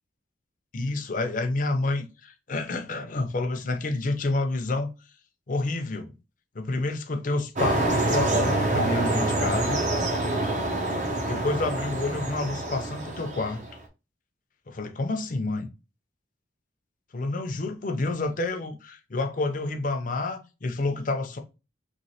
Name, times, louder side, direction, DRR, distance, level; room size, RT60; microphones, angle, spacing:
voice 1, 0.7-4.9 5.5-6.1 6.5-9.8 11.3-13.6 14.7-15.7 17.1-21.4, left 2 dB, 40° left, 0.5 m, -29 dB
sound 1, 7.6-13.7, right 2 dB, 35° right, 0.6 m, -26 dB
3.1 x 3.0 x 2.7 m
head